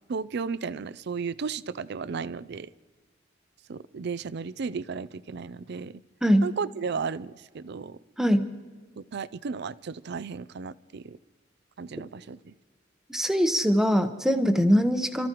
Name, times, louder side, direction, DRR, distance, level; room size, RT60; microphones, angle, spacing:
voice 1, 0.1-2.7 3.7-6.0 6.4-8.0 9.0-11.2 11.8-12.5, right 5 dB, 60° right, 18 dB, 0.5 m, -34 dB
voice 2, 13.1-15.3, equal, 5° right, 6 dB, 1.0 m, -22 dB
30.0 x 14.0 x 3.0 m, 1.4 s
head